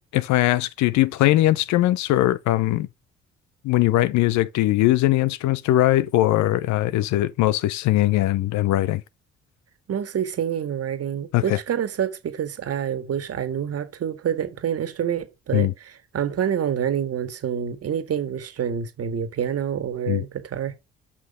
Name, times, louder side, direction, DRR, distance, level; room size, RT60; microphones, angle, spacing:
voice 1, 0.1-2.9 3.6-9.0 11.3-11.6 15.5-15.7 20.1-20.2, left 15 dB, 70° left, 0.6 m, -20 dB
voice 2, 9.9-20.7, right 8 dB, 55° right, 1.8 m, -27 dB
5.9 x 5.9 x 4.8 m
hypercardioid pair, 55°, 30 cm